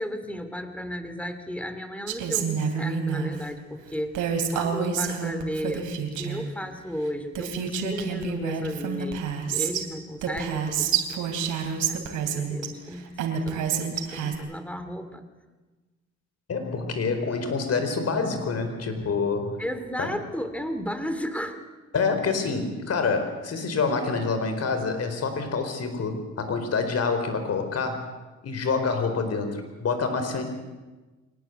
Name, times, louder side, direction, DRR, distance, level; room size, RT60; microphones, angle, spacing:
voice 1, 0.0-15.2 19.6-21.6, equal, 5° left, 9 dB, 2.7 m, -34 dB
Female speech woman speaking, 2.1-3.3 4.1-6.5 7.1-7.2 7.3-9.8 10.2-12.7 13.2-14.4, right 7 dB, 90° right, 3.1 m, -28 dB
voice 2, 16.5-19.6 20.0-20.1 21.9-28.1 28.4-30.5, left 4 dB, 55° left, 7 dB, 4.6 m, -27 dB
23.5 x 19.0 x 8.0 m, 1.2 s
cardioid pair, 90°, 30 cm